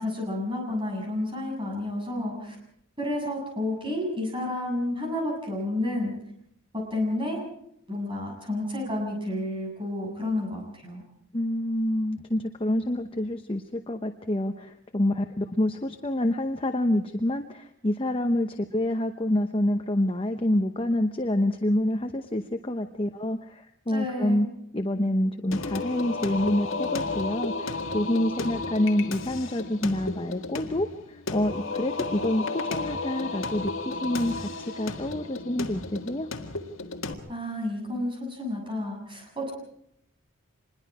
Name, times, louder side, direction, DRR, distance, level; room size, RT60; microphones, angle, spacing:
voice 1, 0.0-2.5 3.0-6.1 6.7-7.4 7.9-11.0 23.9-24.5 37.3-39.5, left 1 dB, 25° right, 0 dB, 7.4 m, -30 dB
voice 2, 11.3-24.5 24.7-36.3, left 1 dB, 25° left, 6 dB, 0.8 m, -27 dB
Singing, 25.5-37.1, left 3 dB, 65° left, 1.8 m, -33 dB
26.0 x 21.5 x 4.9 m, 0.72 s
head